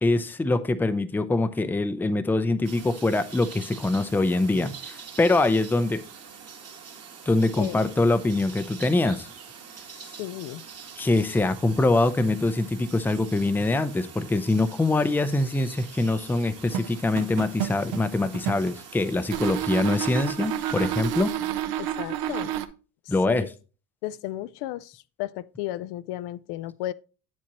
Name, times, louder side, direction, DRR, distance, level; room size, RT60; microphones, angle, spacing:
voice 1, 0.0-6.0 7.3-9.3 11.0-21.3 23.1-23.5, left 2 dB, 5° left, 0.4 m, -24 dB
sound 1, 2.6-21.3, right 6 dB, 40° right, 1.5 m, -44 dB
voice 2, 10.2-10.6 21.8-22.5 23.3-23.5 24.0-26.9, left 14 dB, 80° left, 0.5 m, -34 dB
sound 2, 16.7-18.8 19.3-22.7, right 11 dB, 65° right, 0.7 m, -30 dB
8.4 x 7.5 x 2.9 m
cardioid pair, 110°, 39 cm